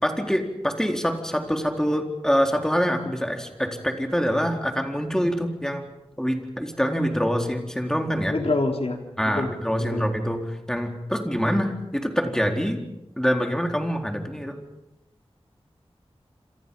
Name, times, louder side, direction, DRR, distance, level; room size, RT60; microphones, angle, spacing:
voice 1, 0.0-5.9 6.2-8.4 9.2-12.8 13.2-14.6, equal, 5° left, 3 dB, 4.1 m, -25 dB
voice 2, 8.3-9.0 9.3-9.5 9.9-10.1, left 2 dB, 70° left, 2 dB, 3.9 m, -25 dB
28.0 x 27.0 x 5.5 m, 0.88 s
wide cardioid pair, 65°, 11 cm